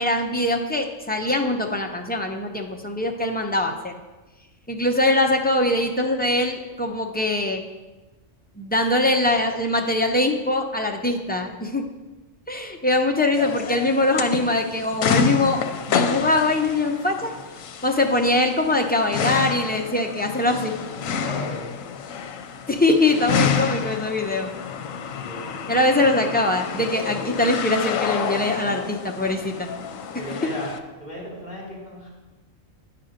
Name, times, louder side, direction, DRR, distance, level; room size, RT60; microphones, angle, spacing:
voice 1, 0.0-3.9 4.7-7.6 8.6-11.8 12.5-15.6 15.9-17.3 17.8-20.7 22.7-24.5 25.7-29.7, left 2 dB, 10° left, 2 dB, 0.5 m, -22 dB
sound 1, 13.3-30.8, left 7 dB, 85° left, 1.1 m, -29 dB
voice 2, 21.2-21.8 25.1-25.9 30.2-30.7 31.0-32.1, equal, 35° left, -4 dB, 3.4 m, -36 dB
10.0 x 5.8 x 5.1 m, 1.2 s
omnidirectional pair, 1.4 m